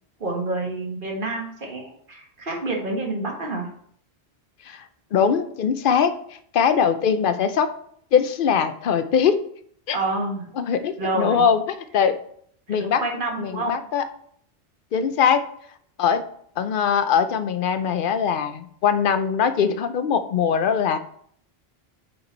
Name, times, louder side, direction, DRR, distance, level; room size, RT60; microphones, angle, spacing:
voice 1, 0.2-3.7 9.9-10.5 11.0-11.5 12.7-13.7, right 2 dB, 55° right, -1 dB, 1.7 m, -28 dB
voice 2, 5.1-6.1 6.5-7.7 8.1-9.4 9.9-10.0 10.6-12.2 12.7-13.0 13.4-14.0 14.9-15.4 16.0-16.2 16.6-21.0, left 7 dB, 60° left, 11 dB, 0.7 m, -21 dB
6.4 x 4.5 x 4.3 m, 0.63 s
omnidirectional pair, 1.1 m